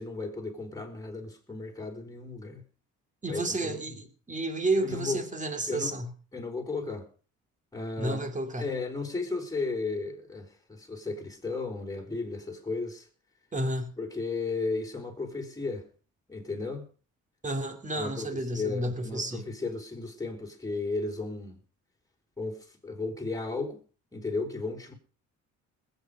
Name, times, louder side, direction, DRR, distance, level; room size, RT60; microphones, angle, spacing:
voice 1, 0.0-2.6 3.3-3.8 4.8-5.2 5.7-6.0 6.3-7.1 7.7-8.3 8.6-13.1 14.0-15.9 16.3-16.9 17.9-21.6 22.4-23.8 24.1-24.9, left 3 dB, 10° left, 4.4 m, -34 dB
voice 2, 3.2-6.1 8.0-8.7 13.5-13.9 17.4-19.5, right 2 dB, 25° right, 2.8 m, -31 dB
20.5 x 8.9 x 5.0 m
cardioid pair, 90°, 30 cm